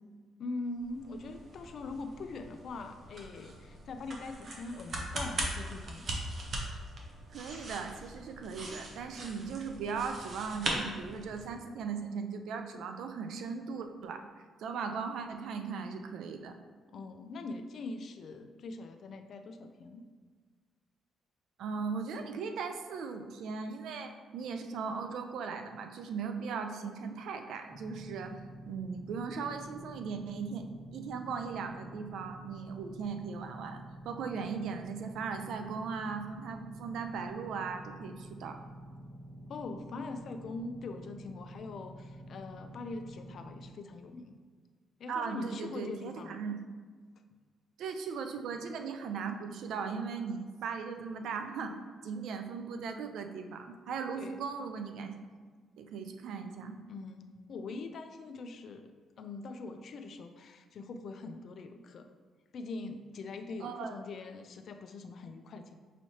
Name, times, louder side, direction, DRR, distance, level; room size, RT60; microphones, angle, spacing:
voice 1, 0.4-6.1 16.9-20.1 39.5-44.4 45.0-46.3 54.2-54.5 56.9-62.1 62.5-65.7, left 3 dB, 60° left, 7 dB, 0.4 m, -42 dB
sound 1, 0.8-11.6, right 2 dB, 50° right, 0.8 m, -40 dB
voice 2, 7.3-14.2 14.6-16.5 21.6-28.4 28.7-30.6 30.9-38.6 45.1-46.5 47.8-51.8 52.0-55.2 55.8-56.8 63.6-64.0, right 5 dB, 75° right, 7 dB, 0.4 m, -38 dB
sound 2, 27.7-43.7, equal, 10° left, 1.0 m, -49 dB
5.5 x 3.1 x 2.8 m, 1.5 s
cardioid pair, 90°, 0 cm